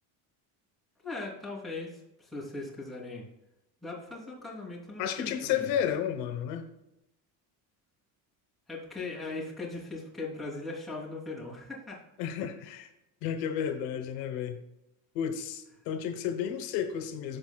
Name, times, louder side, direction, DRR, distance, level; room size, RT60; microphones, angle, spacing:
voice 1, 1.0-3.2 3.8-5.7 8.7-12.0, left 3 dB, ahead, 3.0 m, -39 dB
voice 2, 5.0-6.6 12.2-12.9 13.2-14.6 15.1-17.4, left 9 dB, 85° left, 1.0 m, -32 dB
15.0 x 5.2 x 2.3 m
cardioid pair, 135°, 43 cm